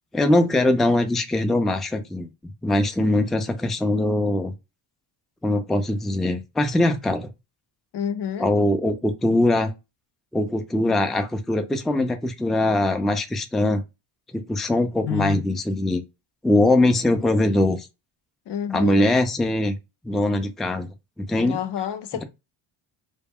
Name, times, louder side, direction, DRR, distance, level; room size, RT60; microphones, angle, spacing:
voice 1, 0.1-2.3 2.6-4.5 5.4-7.3 8.4-9.7 10.3-13.8 14.3-16.0 16.4-17.9 18.7-19.7 20.0-20.9 21.2-21.6, left 1 dB, ahead, 0.4 m, -22 dB
voice 2, 7.9-8.5 15.0-15.4 18.5-19.1 21.3-22.2, left 9 dB, 60° left, 0.7 m, -28 dB
2.1 x 2.1 x 3.5 m
cardioid pair, 85°, 47 cm